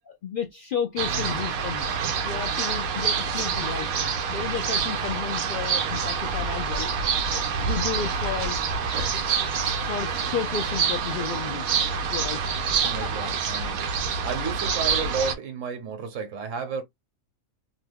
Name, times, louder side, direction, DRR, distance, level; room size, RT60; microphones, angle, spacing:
voice 1, 0.1-1.9 2.2-3.9 4.3-6.9 7.3-8.6 8.9-9.2 9.5-9.6 9.8-11.6 12.1-12.4 12.8-13.1, left 7 dB, 70° left, 0.4 m, -32 dB
sound 1, 1.0-15.3, right 6 dB, 85° right, 1.1 m, -27 dB
voice 2, 12.8-13.9 14.2-16.8, right 5 dB, 65° right, 1.2 m, -32 dB
2.9 x 2.2 x 3.3 m
omnidirectional pair, 1.5 m